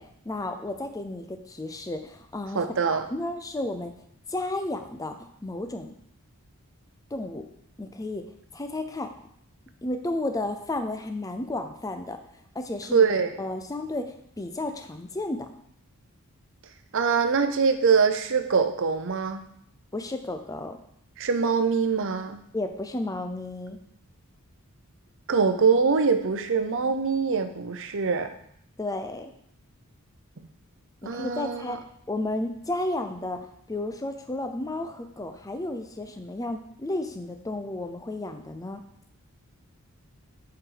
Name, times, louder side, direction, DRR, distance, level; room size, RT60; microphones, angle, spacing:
voice 1, 0.0-2.6 2.9-3.9 4.3-5.9 7.1-7.4 7.8-8.2 8.5-9.1 9.8-12.2 12.5-13.0 13.4-15.5 19.9-20.8 22.5-23.8 28.8-29.3 31.0-38.8, left 2 dB, 15° left, 6 dB, 0.5 m, -32 dB
voice 2, 2.5-3.1 12.9-13.3 16.9-19.4 21.2-22.4 25.3-28.3 30.4-30.5 31.0-31.8, right 5 dB, 60° right, 8 dB, 0.7 m, -23 dB
7.9 x 4.7 x 3.9 m, 0.69 s
head